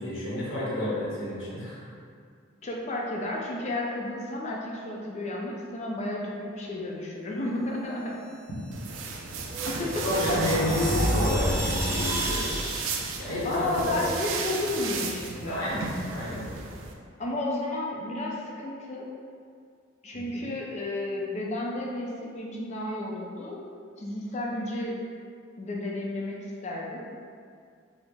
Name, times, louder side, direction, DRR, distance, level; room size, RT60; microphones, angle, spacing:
voice 1, 0.0-1.8 10.0-12.4 13.2-13.9 15.4-16.4 20.1-20.2, left 1 dB, 85° left, -8 dB, 1.1 m, -30 dB
voice 2, 2.6-8.2 9.7-10.4 13.4-15.7 17.2-19.1 20.0-23.6 24.0-25.0 25.6-27.1, left 2 dB, 35° left, -2 dB, 0.4 m, -32 dB
sound 1, 8.6-13.1, equal, 15° right, 0.5 m, -30 dB
sound 2, 8.7-16.9, right 4 dB, 85° right, 0.4 m, -35 dB
4.1 x 2.0 x 3.3 m, 2.2 s
head